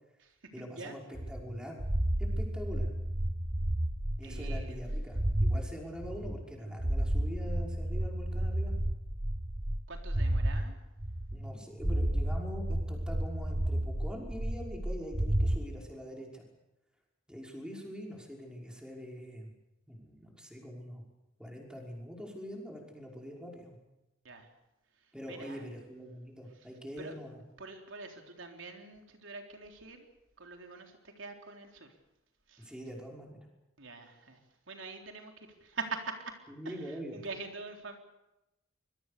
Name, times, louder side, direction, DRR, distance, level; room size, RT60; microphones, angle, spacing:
voice 1, 0.5-1.0 1.3-1.8 2.2-2.9 4.2-8.7 11.3-16.4 17.3-19.5 19.9-21.0 21.4-23.8 25.1-27.4 32.6-33.5 36.5-37.2, equal, 5° right, 0 dB, 5.7 m, -44 dB
sound 1, 1.1-5.6 6.0-10.6 11.0-11.5 11.8-15.6, right 1 dB, 30° right, 1.4 m, -32 dB
voice 2, 4.2-4.8 9.9-10.8 24.2-24.5 25.3-25.7 26.5-26.7 27.0-27.1 27.6-30.1 30.4-31.9 32.5-32.7 33.8-34.4 34.7-36.3 36.6-38.0, right 4 dB, 75° right, 3 dB, 3.8 m, -44 dB
26.0 x 22.0 x 6.9 m, 0.93 s
head